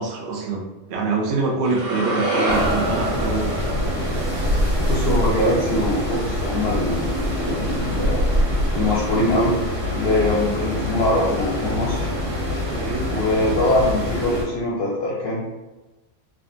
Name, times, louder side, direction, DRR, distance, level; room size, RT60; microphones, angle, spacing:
voice 1, 0.0-3.5 12.7-13.1, right 4 dB, 65° right, -1 dB, 0.7 m, -25 dB
sound 1, 1.6-5.9, right 1 dB, 45° right, 1.1 m, -27 dB
sound 2, 2.5-14.4, left 1 dB, 85° right, 1.8 m, -24 dB
voice 2, 4.9-8.3 8.7-9.5 9.9-12.1 13.1-15.4, left 1 dB, 60° left, -4 dB, 0.7 m, -22 dB
3.5 x 2.3 x 2.5 m, 1.1 s
omnidirectional pair, 1.4 m